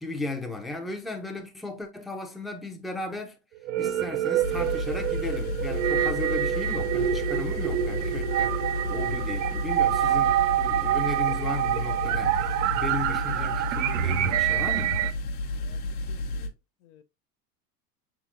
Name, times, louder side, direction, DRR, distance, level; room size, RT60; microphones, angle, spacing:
voice 1, 0.0-3.4 3.8-15.0, left 2 dB, ahead, 0.6 m, -36 dB
sound 1, 3.6-15.1, right 11 dB, 55° right, 0.6 m, -26 dB
sound 2, 4.4-16.5, left 1 dB, 65° left, 0.9 m, -32 dB
voice 2, 16.1-16.5 16.8-17.0, left 12 dB, 45° left, 0.5 m, -54 dB
5.5 x 3.8 x 2.5 m
figure-of-eight pair, 85°, 49 cm